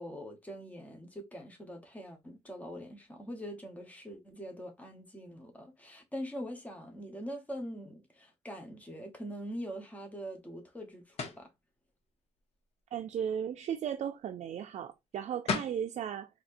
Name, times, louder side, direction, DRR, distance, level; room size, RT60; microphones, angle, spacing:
voice 1, 0.0-11.5, equal, 10° left, 1.0 m, -43 dB
sound 1, 11.2-11.5 15.1-15.2 15.5-15.8, left 4 dB, 60° left, 0.8 m, -33 dB
voice 2, 12.9-16.3, right 9 dB, 70° right, 0.4 m, -36 dB
4.1 x 2.8 x 2.5 m
wide cardioid pair, 160°, 12 cm